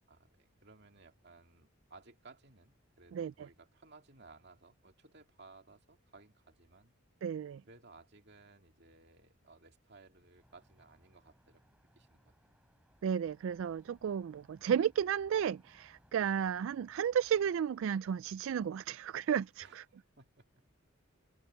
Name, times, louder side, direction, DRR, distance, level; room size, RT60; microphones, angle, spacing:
voice 1, 0.1-6.9 7.7-11.6 11.9-12.6 16.4-16.5 19.6-20.5, right 3 dB, 55° right, 2.5 m, -59 dB
voice 2, 7.2-7.6 13.0-19.8, right 8 dB, 70° right, 0.3 m, -33 dB
sound 1, 10.4-17.6, equal, 5° right, 5.0 m, -68 dB
open air
head